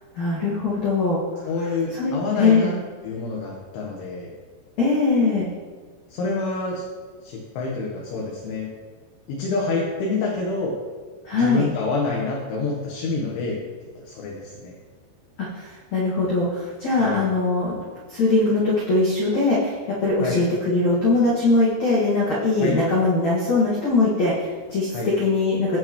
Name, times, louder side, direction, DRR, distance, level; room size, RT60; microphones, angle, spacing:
voice 1, 0.1-1.2 2.0-2.7 4.8-5.5 11.3-11.6 15.4-17.7 18.1-19.7 20.0-25.8, left 3 dB, 50° left, -7 dB, 2.3 m, -21 dB
voice 2, 1.5-2.7 3.0-4.3 6.1-6.8 7.2-8.7 9.3-10.7 11.3-13.6 14.1-14.8 17.0-17.2 20.2-20.4 22.6-22.8 24.9-25.1, left 3 dB, 75° left, -3 dB, 3.5 m, -27 dB
18.0 x 6.6 x 3.1 m, 1.6 s
omnidirectional pair, 5.6 m